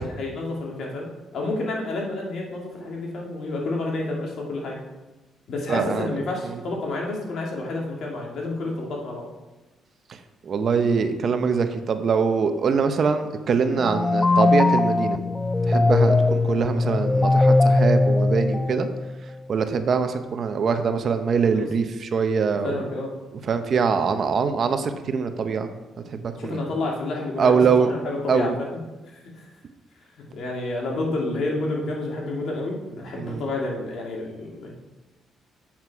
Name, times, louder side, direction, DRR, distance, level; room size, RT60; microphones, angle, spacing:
voice 1, 0.0-4.8 5.5-9.3 21.5-21.7 22.6-23.1 26.3-28.7 29.3-29.5 30.3-34.7, left 2 dB, 65° left, -1 dB, 2.4 m, -29 dB
voice 2, 5.7-6.2 10.5-15.2 15.7-18.9 19.5-22.7 23.5-25.7 26.1-26.6 27.4-27.9 28.3-28.5 33.2-33.4, right 5 dB, 55° right, 8 dB, 0.8 m, -23 dB
sound 1, 13.8-19.2, left 3 dB, 20° left, 0.4 m, -20 dB
8.0 x 7.3 x 4.8 m, 1.1 s
cardioid pair, 90°, 0 cm